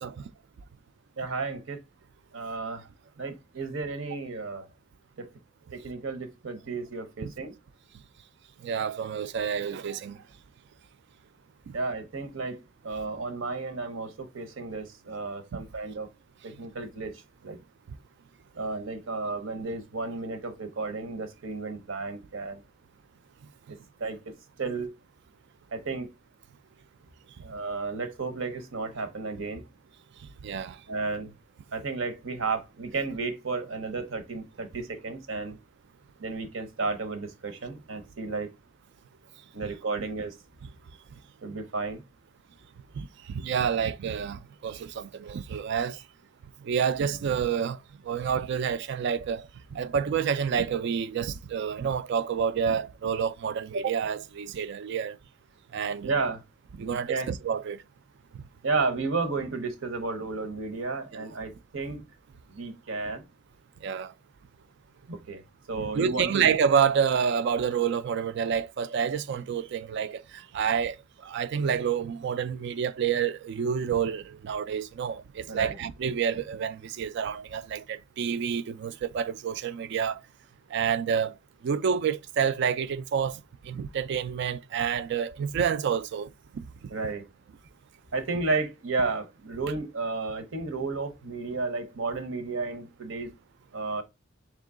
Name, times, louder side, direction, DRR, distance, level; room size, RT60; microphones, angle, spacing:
voice 1, 1.2-1.8 2.3-2.9 3.2-4.7 5.2-5.3 5.7-7.5 11.7-16.1 16.4-17.1 17.4-17.6 18.6-22.6 24.0-24.2 24.6-24.9 25.7-26.1 27.4-29.6 30.9-31.3 31.7-35.6 36.2-38.5 39.5-40.4 41.4-42.0 56.0-56.4 56.7-57.3 58.6-62.0 62.5-63.2 65.1-65.4 65.7-66.5 75.5-75.8 86.9-87.2 88.1-93.3 93.7-94.0, right 3 dB, 80° right, 0.9 m, -32 dB
voice 2, 8.6-10.2 30.4-30.8 43.0-43.1 43.3-46.0 46.6-47.8 48.1-49.5 49.7-55.2 55.7-56.1 56.8-57.8 61.2-61.3 63.8-64.1 65.8-70.2 70.5-71.0 71.2-80.2 80.7-81.3 81.6-83.4 83.7-86.3 86.5-86.6, right 7 dB, 60° right, 0.3 m, -28 dB
3.7 x 3.0 x 3.6 m
head